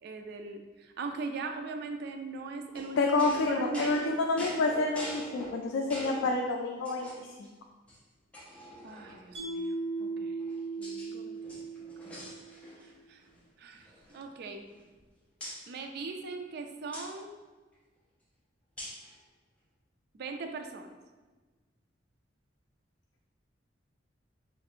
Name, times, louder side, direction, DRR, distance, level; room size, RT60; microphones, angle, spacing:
voice 1, 0.0-3.2 3.5-4.0 8.8-10.3 10.8-11.4 12.8-13.2 13.6-14.7 15.7-17.3 20.1-20.9, right 3 dB, 55° right, 5 dB, 0.3 m, -40 dB
sound 1, 2.7-6.3 6.8-7.5 7.9-8.0 8.3-9.4 10.1-11.1 11.4-12.9 13.2-13.4 13.7-15.0 15.4-15.6 16.9-17.1 18.8-19.1, equal, 5° left, 0.7 m, -44 dB
voice 2, 3.0-7.1 7.4-7.5, left 3 dB, 90° left, 2 dB, 0.3 m, -28 dB
Mallet percussion, 9.3-12.6, right 3 dB, 80° right, 1.0 m, -37 dB
3.2 x 2.5 x 4.3 m, 1.3 s
head